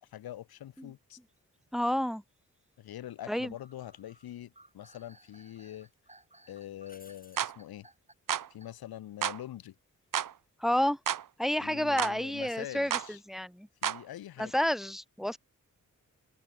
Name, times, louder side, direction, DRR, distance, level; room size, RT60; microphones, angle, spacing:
voice 1, 0.0-1.2 2.8-5.9 6.5-7.9 8.5-9.8 11.6-13.2 13.8-14.5, left 12 dB, 85° left, 2.4 m, -44 dB
sound 1, 1.1-8.9, right 2 dB, 20° right, 7.1 m, -61 dB
voice 2, 1.7-2.2 3.3-3.5 10.6-11.0 11.4-13.7 14.4-15.4, left 1 dB, ahead, 1.5 m, -30 dB
sound 2, 4.8-5.4 5.8-6.0 6.8-7.6 10.7-11.0, left 2 dB, 25° left, 3.8 m, -60 dB
sound 3, 7.4-7.5 8.3-8.5 9.2-9.4 10.1-10.3 11.1-11.2 12.0-12.2 12.9-13.1 13.8-14.0, right 10 dB, 60° right, 1.0 m, -31 dB
open air
supercardioid pair, 40°, 36 cm